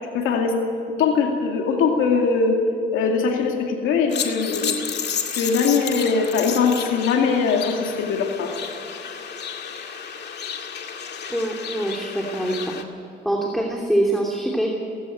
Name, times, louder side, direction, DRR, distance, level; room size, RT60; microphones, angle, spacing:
voice 1, 0.1-0.5 1.0-2.6 2.9-4.7 5.3-8.5, left 5 dB, 90° left, 2 dB, 2.4 m, -21 dB
sound 1, 4.1-12.8, left 7 dB, 55° left, 2.2 m, -32 dB
voice 2, 11.3-12.6 13.2-14.7, right 1 dB, ahead, -1 dB, 2.9 m, -24 dB
18.0 x 16.0 x 9.4 m, 2.8 s
cardioid pair, 90°, 20 cm